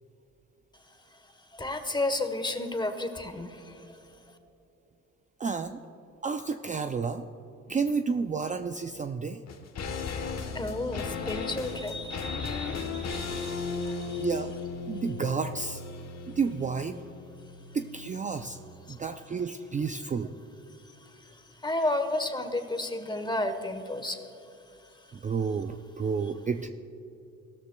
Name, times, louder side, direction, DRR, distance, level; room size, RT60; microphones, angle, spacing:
voice 1, 1.5-4.0 10.5-14.2 18.9-19.0 20.8-24.2, left 2 dB, 15° left, 7 dB, 1.1 m, -33 dB
voice 2, 5.4-5.8 6.2-7.3 7.7-9.4 14.2-14.5 14.9-15.8 16.3-17.0 17.7-18.6 18.9-20.3 25.2-26.7, right 5 dB, 25° right, 7 dB, 0.4 m, -31 dB
sound 1, 9.5-18.9 19.1-19.2, left 4 dB, 60° left, 1.2 m, -36 dB
16.5 x 13.0 x 2.3 m, 2.8 s
cardioid pair, 90°, 30 cm